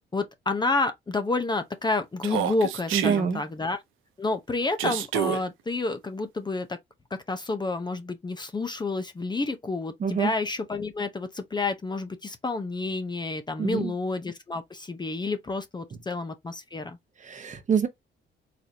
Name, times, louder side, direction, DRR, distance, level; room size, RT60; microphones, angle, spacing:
voice 1, 0.1-3.8 4.2-6.8 7.3-17.0, left 3 dB, 20° left, 0.6 m, -29 dB
Human voice, 2.2-3.2 4.8-5.4, right 11 dB, 90° right, 0.7 m, -28 dB
voice 2, 2.9-3.4 10.0-10.3 13.6-13.9 17.2-17.9, right 6 dB, 40° right, 0.9 m, -25 dB
4.0 x 3.0 x 2.7 m
cardioid pair, 90°, 20 cm